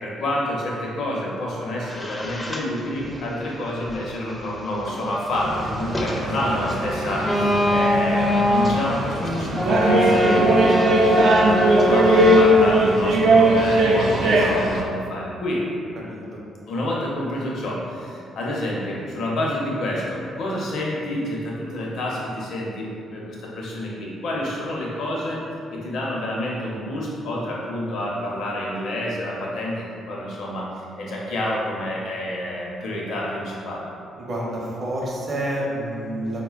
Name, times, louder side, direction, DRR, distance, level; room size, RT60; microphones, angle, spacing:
voice 1, 0.0-11.3 11.7-15.7 16.7-25.4 25.7-33.9, left 1 dB, 70° left, -4 dB, 0.6 m, -28 dB
sound 1, 1.9-3.6 3.9-12.4, left 1 dB, 20° left, 0.4 m, -23 dB
sound 2, 5.3-14.8, right 1 dB, 70° right, 0.3 m, -20 dB
voice 2, 7.3-7.7 16.1-16.2 34.2-36.4, right 1 dB, 45° right, -4 dB, 0.7 m, -29 dB
4.0 x 2.1 x 2.3 m, 2.4 s
cardioid pair, 90°, 0 cm